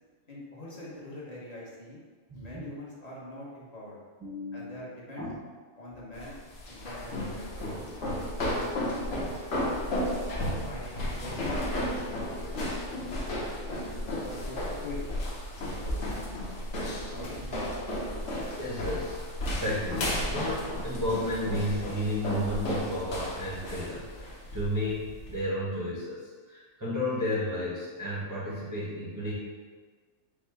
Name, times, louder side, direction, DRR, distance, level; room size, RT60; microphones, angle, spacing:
voice 1, 0.3-2.0 2.3-4.0 4.5-5.3 5.7-6.4 6.6-7.8 10.5-11.5 11.7-13.3 13.7-15.1 15.7-16.2 17.1-17.7, left 1 dB, 35° left, -5 dB, 1.0 m, -44 dB
voice 2, 2.3-2.6 4.2-4.8 5.2-5.3 18.6-19.2 19.5-29.3, left 1 dB, 20° right, -7 dB, 0.6 m, -33 dB
sound 1, 6.1-25.4, left 1 dB, 60° left, 1.2 m, -33 dB
5.4 x 2.1 x 4.6 m, 1.4 s
omnidirectional pair, 1.4 m